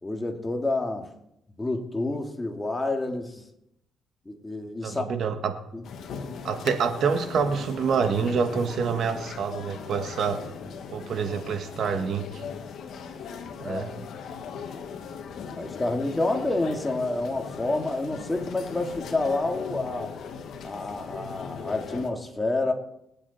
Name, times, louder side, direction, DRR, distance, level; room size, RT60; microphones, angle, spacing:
voice 1, 0.0-1.1 1.6-3.4 4.3-5.1 5.7-5.8 13.6-13.9 15.6-20.1 20.6-22.7, left 2 dB, 15° left, 3 dB, 2.3 m, -28 dB
voice 2, 4.8-5.6 6.4-10.5 10.9-12.4 13.6-14.0, right 6 dB, 65° right, 8 dB, 1.7 m, -27 dB
sound 1, 5.8-22.1, left 6 dB, 70° left, 1.8 m, -39 dB
26.0 x 8.7 x 4.3 m, 0.81 s
cardioid pair, 90°, 0 cm